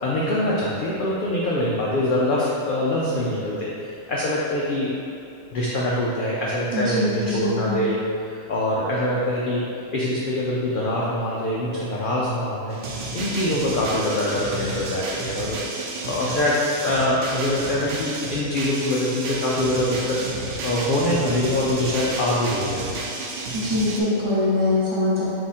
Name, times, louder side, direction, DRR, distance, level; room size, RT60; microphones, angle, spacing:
voice 1, 0.0-4.9 5.5-12.8 13.1-15.6 16.1-20.3 20.6-22.9, left 1 dB, 70° left, -5 dB, 0.5 m, -24 dB
voice 2, 6.7-7.7 23.5-25.3, left 1 dB, 25° right, -11 dB, 0.9 m, -23 dB
sound 1, 12.7-24.0, right 2 dB, 65° right, 0.5 m, -31 dB
3.6 x 2.8 x 4.1 m, 2.6 s
omnidirectional pair, 1.4 m